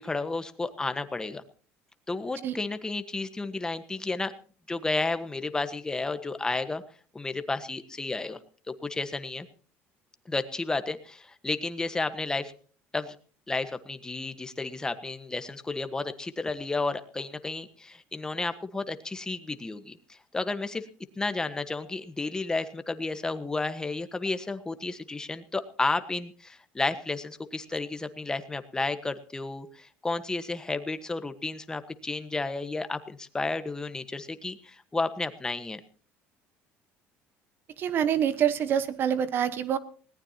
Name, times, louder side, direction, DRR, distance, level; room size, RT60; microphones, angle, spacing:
voice 1, 0.0-1.4 2.1-4.3 4.7-6.8 7.1-8.4 8.7-9.5 10.3-12.5 12.9-13.2 13.5-20.9 21.2-35.8, left 3 dB, 15° left, 10 dB, 1.4 m, -32 dB
voice 2, 37.8-39.8, right 9 dB, 45° right, 13 dB, 1.2 m, -26 dB
20.0 x 18.0 x 2.9 m, 0.42 s
cardioid pair, 125°, 5 cm